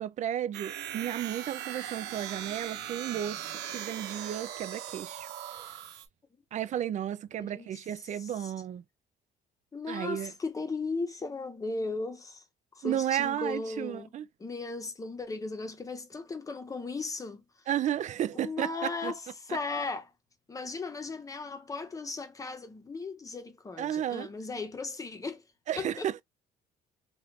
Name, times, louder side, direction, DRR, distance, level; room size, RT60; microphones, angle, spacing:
voice 1, 0.0-5.3 5.7-5.8 6.5-8.8 9.9-10.3 12.8-14.3 17.7-19.1 23.8-24.3 25.7-26.2, right 11 dB, 45° right, 0.4 m, -33 dB
sound 1, 0.5-6.1, right 10 dB, 75° right, 0.9 m, -39 dB
voice 2, 7.4-8.5 9.7-12.4 12.7-14.1 14.4-17.4 18.3-20.1 20.5-25.4 25.8-26.1, left 3 dB, 20° left, 0.9 m, -37 dB
3.1 x 2.4 x 3.2 m
cardioid pair, 110°, 17 cm